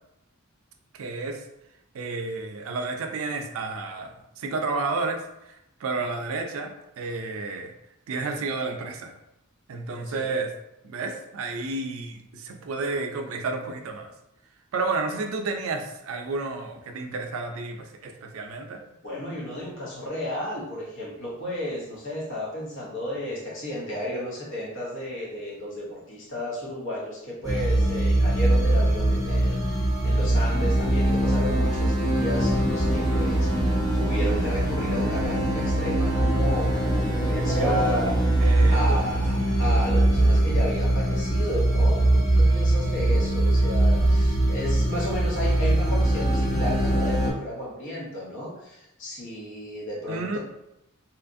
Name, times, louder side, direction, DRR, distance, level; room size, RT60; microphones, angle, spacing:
voice 1, 0.9-1.4 1.9-5.2 5.5-7.7 8.1-9.1 9.7-10.5 10.8-14.1 14.7-18.8 37.5-38.1 38.4-39.0 50.1-50.4, right 3 dB, 70° right, 5 dB, 0.4 m, -31 dB
voice 2, 19.0-38.1 38.7-50.4, left 1 dB, 60° left, -5 dB, 1.0 m, -33 dB
sound 1, 27.4-47.3, right 1 dB, ahead, 1.0 m, -22 dB
2.8 x 2.4 x 2.5 m, 0.86 s
head